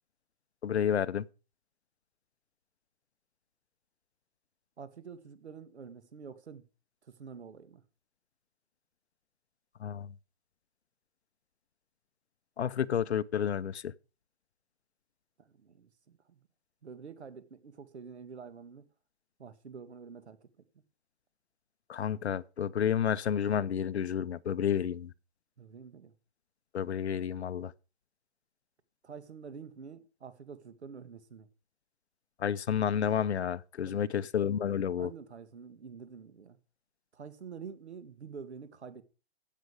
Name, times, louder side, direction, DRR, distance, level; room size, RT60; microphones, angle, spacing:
voice 1, 0.6-1.2 9.8-10.1 12.6-13.9 21.9-25.1 26.7-27.7 32.4-35.1, left 8 dB, 80° left, 0.9 m, -30 dB
voice 2, 4.8-6.7 7.1-7.8 15.4-16.4 16.8-18.9 19.4-20.5 25.6-26.1 29.0-31.5 33.8-34.3 35.0-36.6 37.1-39.0, right 6 dB, 85° right, 2.1 m, -47 dB
15.5 x 6.8 x 4.9 m
hypercardioid pair, 175°, 33 cm